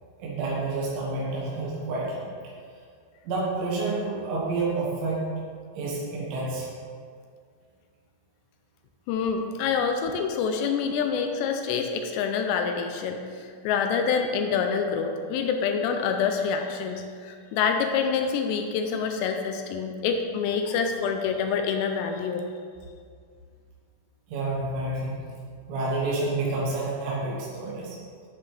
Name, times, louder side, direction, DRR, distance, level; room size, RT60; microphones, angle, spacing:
voice 1, 0.2-2.2 3.3-5.3 5.8-6.7 24.3-25.1 25.7-28.0, right 3 dB, 85° right, -5 dB, 3.8 m, -29 dB
voice 2, 9.1-22.4, left 6 dB, 80° left, 5 dB, 2.7 m, -27 dB
11.5 x 7.6 x 3.3 m, 2.1 s
omnidirectional pair, 5.1 m